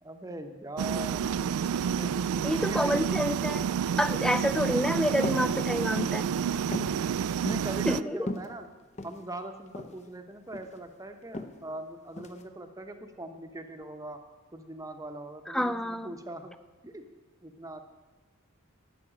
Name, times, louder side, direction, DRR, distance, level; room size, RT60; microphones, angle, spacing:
voice 1, 0.0-1.6 2.0-2.1 2.5-3.0 6.8-8.7 9.0-14.2 14.5-16.5 16.8-17.1 17.4-17.8, right 1 dB, 15° right, 6 dB, 0.9 m, -41 dB
sound 1, 0.8-8.0, right 7 dB, 75° right, 0.3 m, -29 dB
voice 2, 2.4-3.7 4.0-6.3 7.9-8.3 15.5-16.1, equal, 5° left, 13 dB, 0.3 m, -28 dB
sound 2, 5.2-5.5 5.9-6.2 6.7-7.0 7.5-7.7 8.2-9.2 9.7-10.0 10.3-10.8 11.3-11.5 12.2-12.4, left 2 dB, 30° left, 0.7 m, -36 dB
12.0 x 6.0 x 8.6 m, 1.3 s
head